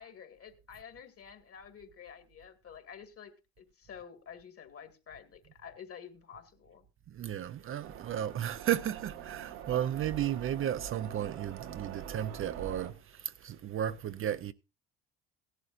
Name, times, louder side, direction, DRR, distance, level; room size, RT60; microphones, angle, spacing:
voice 1, 0.0-6.8, left 7 dB, 45° left, 2.1 m, -50 dB
voice 2, 7.1-14.5, right 10 dB, 40° right, 0.6 m, -34 dB
sound 1, 7.8-12.9, right 8 dB, 80° right, 1.6 m, -44 dB
17.0 x 11.0 x 2.5 m
hypercardioid pair, 70°, 33 cm